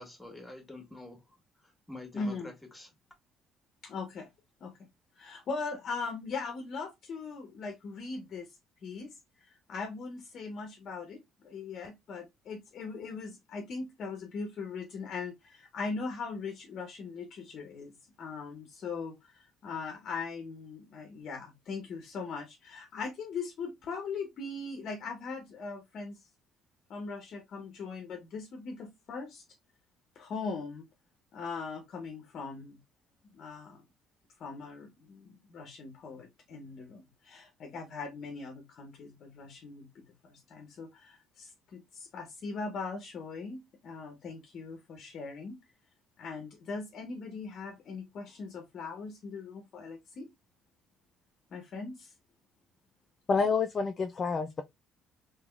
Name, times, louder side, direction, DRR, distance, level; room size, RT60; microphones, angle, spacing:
voice 1, 0.0-2.9, left 2 dB, 10° left, 1.5 m, -47 dB
voice 2, 2.1-2.5 3.8-4.3 4.6-4.7 5.1-8.5 8.8-26.2 26.9-29.4 30.2-30.9 31.3-32.8 33.3-33.8 34.4-45.6 46.2-50.3 51.5-52.1, left 4 dB, 60° left, 0.7 m, -40 dB
voice 3, 53.3-54.6, left 4 dB, 40° left, 0.4 m, -28 dB
3.5 x 2.9 x 2.3 m
supercardioid pair, 70°, 0 cm